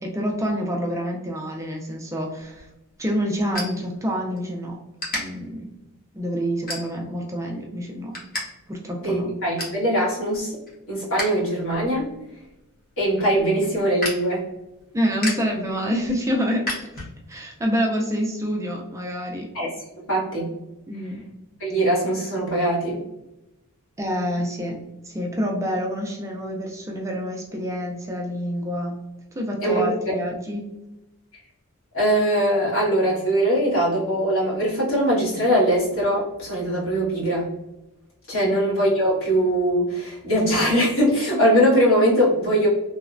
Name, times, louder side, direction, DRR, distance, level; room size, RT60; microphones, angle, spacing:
voice 1, 0.0-2.7 3.0-4.8 5.1-5.7 6.1-8.1 8.7-9.3 14.9-16.7 16.9-19.5 20.9-21.2 24.0-29.0 29.4-30.7 38.4-38.6, equal, 15° right, 0 dB, 0.3 m, -27 dB
sound 1, 2.4-4.5 5.0-5.2 5.8-6.0 6.7-7.2 7.6-8.4 8.7-8.8 9.2-9.8 10.3-11.4 11.7-17.4, left 1 dB, 40° left, 1.0 m, -33 dB
voice 2, 9.0-10.5 10.9-12.1 13.0-14.4 19.5-19.7 20.0-20.5 21.6-23.0 29.6-30.1 31.9-37.5 38.3-42.7, equal, 65° left, -7 dB, 1.4 m, -21 dB
3.0 x 2.0 x 2.4 m, 0.94 s
head